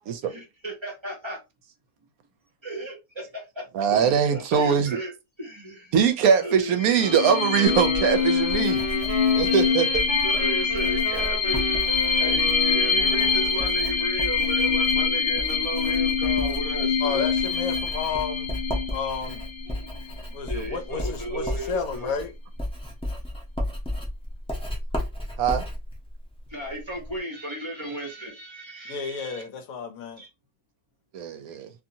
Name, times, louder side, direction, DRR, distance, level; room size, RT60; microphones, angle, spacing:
voice 1, 0.2-1.4 2.6-3.0 3.9-5.1 5.4-5.9 6.4-6.8 7.9-8.2 10.2-11.8 12.2-17.3 20.5-22.2 26.5-29.4 30.2-30.3, right 1 dB, 20° right, 1.0 m, -34 dB
voice 2, 3.7-5.0 5.9-8.8 9.3-10.0 12.3-12.4 19.8-20.0 25.4-25.6 31.1-31.7, right 7 dB, 75° right, 1.0 m, -22 dB
sound 1, 6.7-20.1, left 5 dB, 50° left, 0.7 m, -25 dB
sound 2, 7.0-13.9, right 2 dB, 40° right, 1.5 m, -35 dB
Writing, 7.7-27.2, left 1 dB, 5° left, 0.5 m, -34 dB
voice 3, 17.0-18.6 18.9-19.4 20.3-22.3 28.9-30.2, left 6 dB, 70° left, 1.0 m, -31 dB
2.7 x 2.7 x 2.6 m
omnidirectional pair, 1.6 m